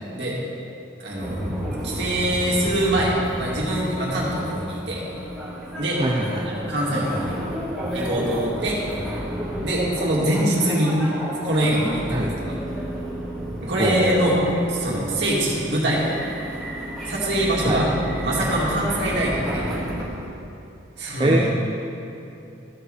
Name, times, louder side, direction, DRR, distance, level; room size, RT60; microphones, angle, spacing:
voice 1, 1.0-1.5 1.8-5.0 5.8-6.0 6.4-7.4 7.9-8.8 9.6-10.9 11.4-12.6 13.6-16.1 17.1-17.8 18.2-19.6 21.0-21.4, right 1 dB, 65° right, -5 dB, 2.2 m, -23 dB
sound 1, 1.2-20.0, right 1 dB, ahead, 1.8 m, -31 dB
voice 2, 6.0-6.5 12.1-12.3 13.8-14.3 17.6-17.8 21.2-21.5, right 1 dB, 25° right, -2 dB, 0.5 m, -23 dB
14.0 x 4.8 x 4.9 m, 2.7 s
head